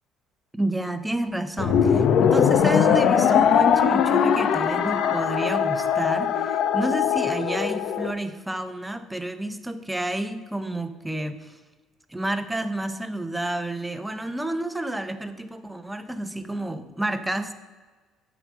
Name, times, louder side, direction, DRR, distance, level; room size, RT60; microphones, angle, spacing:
voice 1, 0.5-11.6 12.1-17.5, right 1 dB, 10° right, 10 dB, 0.7 m, -30 dB
sound 1, 1.6-8.1, left 8 dB, 60° left, 0.6 m, -21 dB
8.8 x 4.9 x 7.2 m, 1.3 s
cardioid pair, 105°, 0 cm